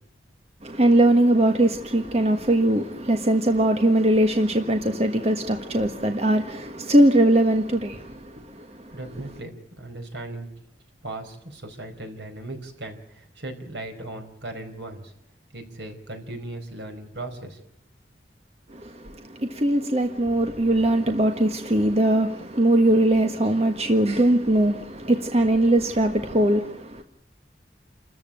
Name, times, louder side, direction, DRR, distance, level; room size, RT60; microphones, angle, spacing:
voice 1, 0.6-9.0 18.7-27.0, right 1 dB, 35° right, 1.5 m, -21 dB
voice 2, 8.9-10.5 11.0-15.1 15.5-17.6, right 2 dB, 80° right, 4.7 m, -37 dB
28.5 x 14.0 x 8.9 m
head